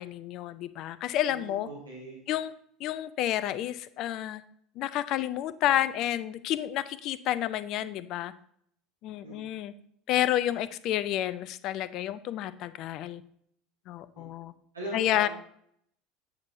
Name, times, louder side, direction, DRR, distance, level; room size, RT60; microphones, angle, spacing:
voice 1, 0.0-1.7 2.3-2.5 2.8-4.4 4.8-8.3 9.0-9.7 10.1-13.2 13.9-14.5 14.9-15.3, left 12 dB, 45° left, 15 dB, 0.4 m, -30 dB
voice 2, 1.3-2.2 9.2-9.4 14.1-14.3 14.7-15.3, right 1 dB, 80° right, -4 dB, 1.5 m, -40 dB
8.0 x 6.9 x 2.6 m, 0.67 s
figure-of-eight pair, 70°, 0 cm